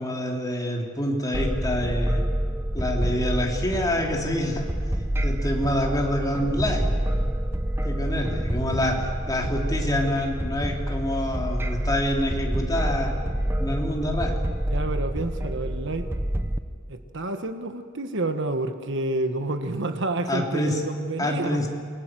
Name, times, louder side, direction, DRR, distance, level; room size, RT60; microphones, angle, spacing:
voice 1, 0.0-2.2 2.7-4.7 5.2-7.2 7.8-13.1 13.6-14.4 20.3-20.9 21.2-21.7, left 1 dB, 15° left, 0 dB, 3.5 m, -27 dB
sound 1, 1.3-16.6, right 1 dB, 10° right, 0.9 m, -27 dB
voice 2, 14.7-16.1 16.9-21.6, right 2 dB, 60° right, 8 dB, 1.3 m, -29 dB
28.5 x 21.5 x 7.7 m, 2.1 s
head